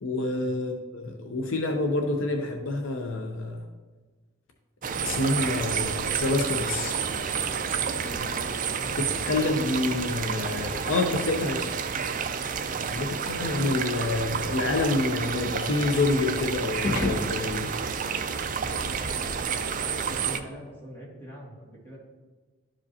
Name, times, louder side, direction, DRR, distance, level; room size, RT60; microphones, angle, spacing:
voice 1, 0.0-3.6 5.0-7.0 9.0-11.7 12.9-17.8, left 2 dB, 65° left, 3 dB, 0.7 m, -27 dB
sound 1, 4.8-20.4, right 6 dB, 40° right, 0.4 m, -30 dB
voice 2, 8.0-9.2 11.2-11.4 12.7-12.9 20.0-22.0, equal, 10° left, -6 dB, 2.3 m, -43 dB
sound 2, 16.8-20.1, left 2 dB, 40° left, 1.2 m, -37 dB
12.0 x 4.9 x 2.8 m, 1.3 s
head